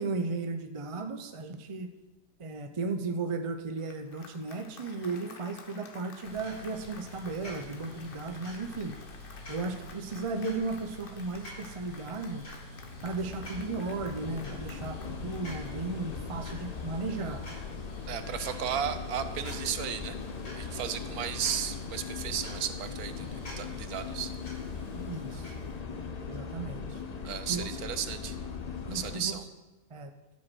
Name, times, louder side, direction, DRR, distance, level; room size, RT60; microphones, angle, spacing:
voice 1, 0.0-1.9 2.4-9.0 9.5-12.4 13.0-17.4 24.9-25.5 26.3-27.0 27.5-27.7 28.9-29.4 29.9-30.1, right 3 dB, 50° right, 6 dB, 0.3 m, -35 dB
Applause, 3.8-16.2, left 4 dB, 45° left, 0.8 m, -52 dB
sound 1, 6.2-25.7, left 1 dB, 65° left, 4.0 m, -47 dB
sound 2, 12.6-29.2, left 6 dB, 90° left, 0.3 m, -40 dB
voice 2, 18.1-20.2 20.5-23.3 23.6-24.3 27.2-28.3 28.9-29.4, right 9 dB, 70° right, 10 dB, 1.1 m, -34 dB
13.0 x 5.3 x 6.2 m, 1.1 s
omnidirectional pair, 1.7 m